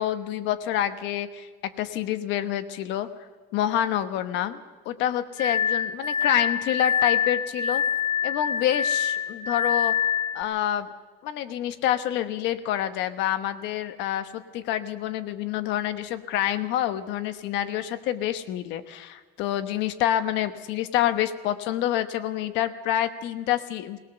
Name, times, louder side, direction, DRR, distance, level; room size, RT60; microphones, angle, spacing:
voice 1, 0.0-3.1 3.5-7.8 8.2-10.0 10.3-10.9 11.2-24.0, left 11 dB, 60° left, 10 dB, 1.1 m, -27 dB
Glass, 5.4-10.4, left 8 dB, 20° left, 1.8 m, -25 dB
20.0 x 19.0 x 6.9 m, 1.3 s
cardioid pair, 180°, 21 cm